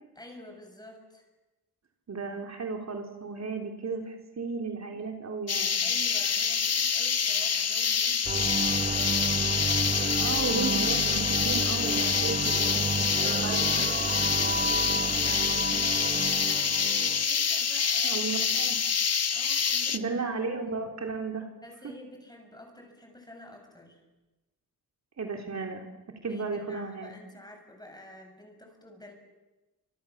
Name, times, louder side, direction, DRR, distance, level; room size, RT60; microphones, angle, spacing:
voice 1, 0.1-1.3 5.8-8.8 12.5-18.5 19.3-20.1 20.7-20.8 21.6-24.0 26.2-29.1, left 1 dB, 10° left, 3 dB, 7.8 m, -48 dB
voice 2, 2.1-5.8 10.2-12.9 13.4-13.6 18.0-18.8 19.9-21.5 25.2-27.1, right 4 dB, 50° right, 3 dB, 3.7 m, -34 dB
sound 1, 5.5-20.0, left 6 dB, 45° left, 1.3 m, -26 dB
sound 2, 8.2-17.2, right 3 dB, 25° right, 1.4 m, -31 dB
30.0 x 27.0 x 7.4 m, 1.1 s
cardioid pair, 100°, 35 cm